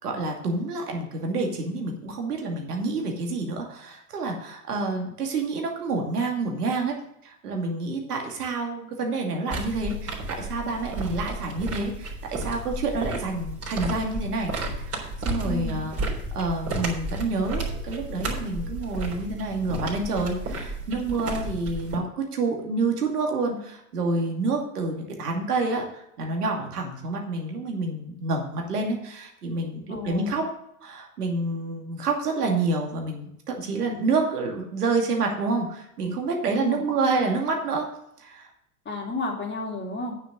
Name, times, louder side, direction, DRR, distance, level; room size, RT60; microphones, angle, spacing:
voice 1, 0.0-7.0 7.2-14.5 14.8-30.4 30.8-37.9 38.2-38.5, right 3 dB, 80° right, 1 dB, 2.6 m, -28 dB
sound 1, 9.5-22.0, right 1 dB, 30° right, 3.8 m, -33 dB
voice 2, 15.4-15.9 29.9-30.4 36.5-36.8 38.8-40.2, left 2 dB, 25° left, 1 dB, 2.7 m, -32 dB
9.3 x 6.6 x 6.7 m, 0.77 s
hypercardioid pair, 90°, 46 cm